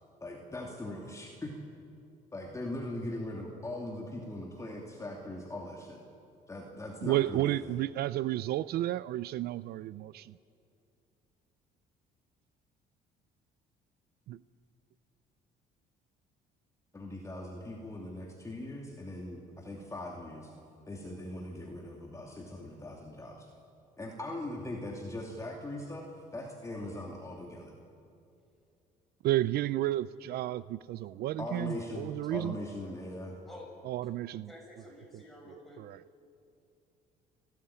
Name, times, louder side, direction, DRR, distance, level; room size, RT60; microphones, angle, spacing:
voice 1, 0.2-1.6 2.3-6.0 6.5-7.8 16.9-20.5 20.9-23.5 24.0-26.1 26.3-27.7 31.4-33.3, left 1 dB, 20° left, 0 dB, 2.7 m, -40 dB
voice 2, 7.0-10.4 14.3-14.4 29.2-32.5 33.9-34.5 35.1-35.2 35.8-36.0, right 14 dB, 70° right, 17 dB, 0.5 m, -32 dB
voice 3, 34.5-35.8, left 1 dB, ahead, -1 dB, 7.2 m, -50 dB
29.0 x 13.5 x 10.0 m, 2.6 s
cardioid pair, 110°, 17 cm